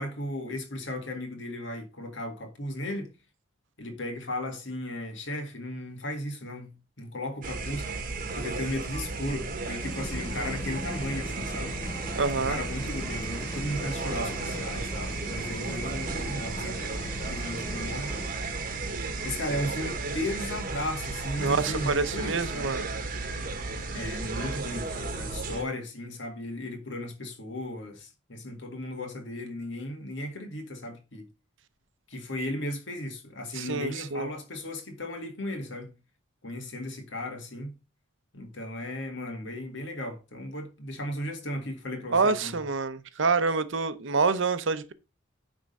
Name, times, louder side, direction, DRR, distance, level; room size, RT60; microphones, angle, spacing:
voice 1, 0.0-3.1 3.8-8.1 8.3-11.7 12.3-16.8 17.1-18.1 19.2-22.8 23.9-31.3 32.1-35.9 36.4-37.7 38.3-42.6, left 1 dB, 60° left, 1.9 m, -35 dB
sound 1, 7.4-25.6, right 3 dB, 45° right, 1.2 m, -34 dB
sound 2, 9.8-18.4, left 1 dB, 20° left, 0.5 m, -39 dB
voice 2, 12.2-12.6 21.4-22.9 33.5-34.3 42.1-44.9, right 4 dB, 70° right, 0.7 m, -27 dB
9.5 x 3.7 x 5.3 m
head